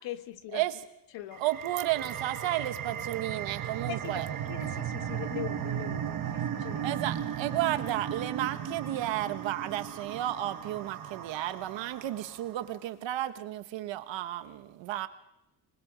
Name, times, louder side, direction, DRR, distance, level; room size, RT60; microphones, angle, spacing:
voice 1, 0.0-0.6 1.1-1.4 3.9-6.9, left 13 dB, 80° left, 10 dB, 1.3 m, -41 dB
sound 1, 1.3-12.5, right 9 dB, 45° right, 1.3 m, -36 dB
voice 2, 1.4-4.3 4.6-4.7 6.8-15.1, right 14 dB, 85° right, 10 dB, 1.3 m, -33 dB
25.5 x 20.5 x 5.1 m, 0.83 s
cardioid pair, 155°, 43 cm